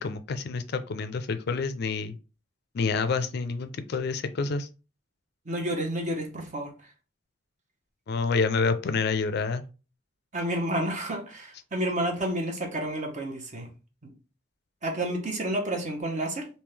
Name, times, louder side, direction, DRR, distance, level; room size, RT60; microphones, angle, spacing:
voice 1, 0.0-2.1 2.7-4.7 8.1-9.6, left 4 dB, 55° left, 0.4 m, -28 dB
voice 2, 5.5-6.7 10.3-13.7 14.0-14.1 14.8-16.5, right 1 dB, 40° right, 0.9 m, -30 dB
3.5 x 2.7 x 3.3 m
head